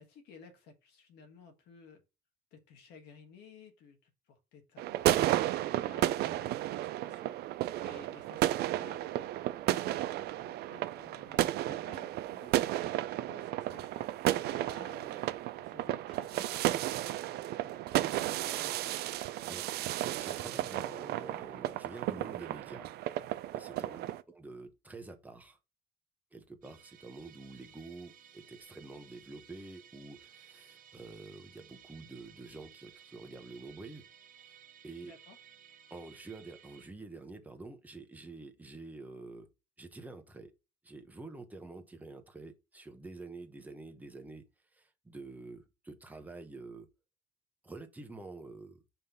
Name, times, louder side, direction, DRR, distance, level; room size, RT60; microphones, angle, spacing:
voice 1, 0.0-2.0 2.5-12.9 13.2-19.0 23.9-24.1 35.0-35.4, left 5 dB, 85° left, 1.6 m, -56 dB
sound 1, 4.8-24.2, right 14 dB, 70° right, 0.4 m, -33 dB
voice 2, 19.2-22.9 23.5-25.6 26.3-34.0 34.4-34.6 34.8-35.1 35.9-39.5 39.8-40.5 40.8-44.4 44.7-46.9 47.6-48.8, right 3 dB, 10° right, 1.0 m, -48 dB
Musical instrument, 26.6-36.9, right 9 dB, 55° right, 0.9 m, -57 dB
5.5 x 3.1 x 5.5 m
cardioid pair, 110°, 17 cm